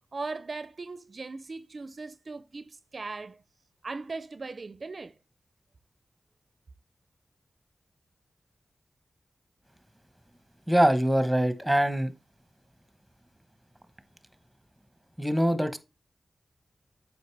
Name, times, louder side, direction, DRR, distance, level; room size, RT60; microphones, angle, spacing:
voice 1, 0.1-3.4 3.8-5.2, right 3 dB, 55° right, 0.4 m, -38 dB
voice 2, 10.7-12.1 15.2-15.8, equal, ahead, 1.0 m, -23 dB
7.9 x 5.2 x 3.3 m
wide cardioid pair, 70°, 0 cm